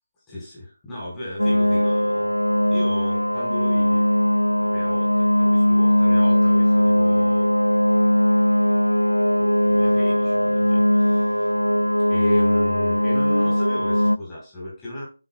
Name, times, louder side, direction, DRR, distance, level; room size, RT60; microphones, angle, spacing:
voice 1, 0.3-2.3 2.7-4.1 4.6-7.5 9.3-11.5 12.1-15.0, left 1 dB, 10° left, -7 dB, 5.5 m, -34 dB
sound 1, 1.4-14.2, equal, 85° left, 0.5 m, -19 dB
11.5 x 7.2 x 2.4 m, 0.33 s
figure-of-eight pair, 155°, 0 cm